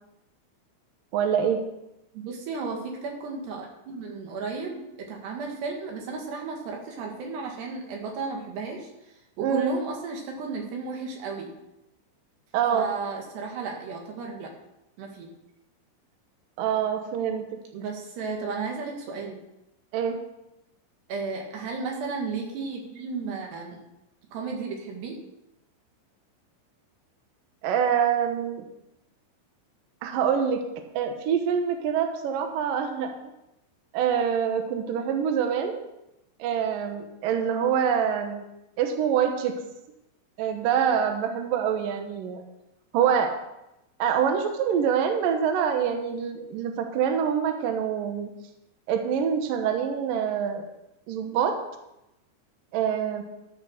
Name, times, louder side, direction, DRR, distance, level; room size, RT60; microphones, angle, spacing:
voice 1, 1.1-1.6 9.4-9.8 12.5-12.9 16.6-17.5 19.9-20.2 27.6-28.6 30.0-30.6 30.9-33.1 33.9-35.8 36.4-38.5 38.8-39.5 40.4-42.4 42.9-43.3 44.0-48.3 48.9-50.6 51.1-51.5 52.7-53.2, right 8 dB, 85° right, 5 dB, 1.9 m, -25 dB
voice 2, 2.1-8.9 9.4-11.5 12.7-14.5 15.0-15.3 17.7-19.4 21.1-23.8 24.3-25.2, right 4 dB, 65° right, 1 dB, 3.7 m, -34 dB
13.5 x 6.0 x 6.5 m, 0.89 s
omnidirectional pair, 5.7 m